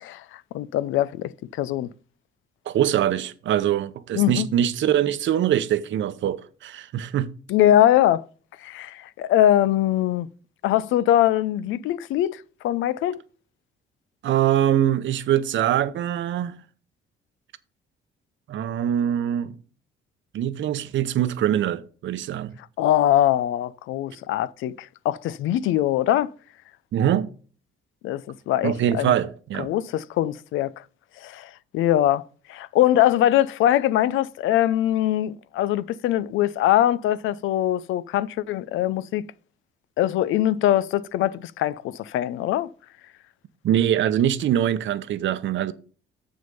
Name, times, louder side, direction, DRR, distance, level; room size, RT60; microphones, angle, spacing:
voice 1, 0.0-1.9 4.1-4.5 7.5-8.2 8.6-10.3 10.6-13.2 22.8-26.3 28.0-29.1 29.6-30.7 31.2-39.3 40.0-42.7, left 12 dB, 85° left, 0.5 m, -22 dB
voice 2, 2.7-7.3 14.2-16.6 18.5-19.5 20.3-22.5 26.9-27.3 28.6-29.7 43.6-45.7, right 10 dB, 70° right, 0.8 m, -23 dB
7.1 x 6.3 x 5.5 m
cardioid pair, 90°, 20 cm